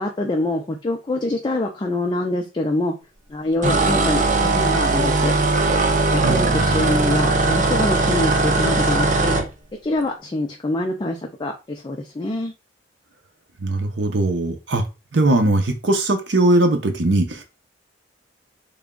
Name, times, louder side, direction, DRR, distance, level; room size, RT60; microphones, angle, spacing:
voice 1, 0.0-2.9 3.3-5.3 6.1-9.4 9.8-12.5, left 2 dB, 25° left, 0.4 m, -25 dB
sound 1, 3.6-9.5, right 3 dB, 45° right, 0.5 m, -19 dB
voice 2, 6.2-6.8 13.6-14.8 15.1-17.4, right 2 dB, 75° right, 0.8 m, -20 dB
3.4 x 2.2 x 3.7 m
head